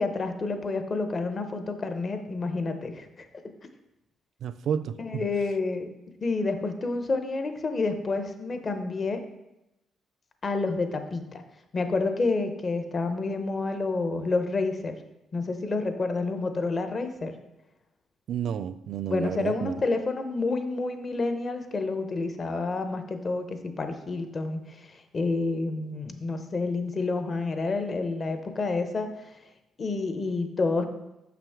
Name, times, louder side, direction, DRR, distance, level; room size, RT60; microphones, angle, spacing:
voice 1, 0.0-3.3 5.0-5.9 6.2-9.2 10.4-11.4 11.7-15.0 15.3-17.4 19.1-29.3 29.8-30.9, left 3 dB, 40° left, 7 dB, 0.8 m, -29 dB
voice 2, 4.4-5.2 18.3-19.8, right 8 dB, 70° right, 14 dB, 0.3 m, -31 dB
6.2 x 5.9 x 3.6 m, 0.91 s
cardioid pair, 90°, 0 cm